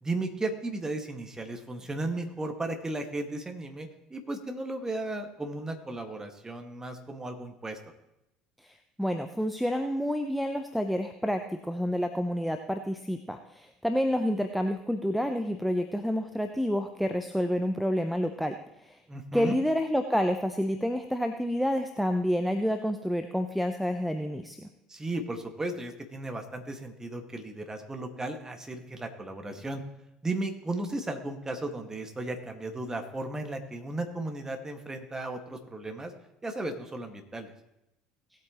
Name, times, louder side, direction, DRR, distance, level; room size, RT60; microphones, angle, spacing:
voice 1, 0.0-7.8 19.1-19.6 24.9-29.8 30.2-36.1 36.4-37.5, right 2 dB, 15° right, 4 dB, 1.9 m, -35 dB
voice 2, 8.6-18.5 18.8-19.0 19.3-24.7, equal, ahead, 6 dB, 0.8 m, -29 dB
18.5 x 8.4 x 3.1 m, 0.86 s
figure-of-eight pair, 60°, 4 cm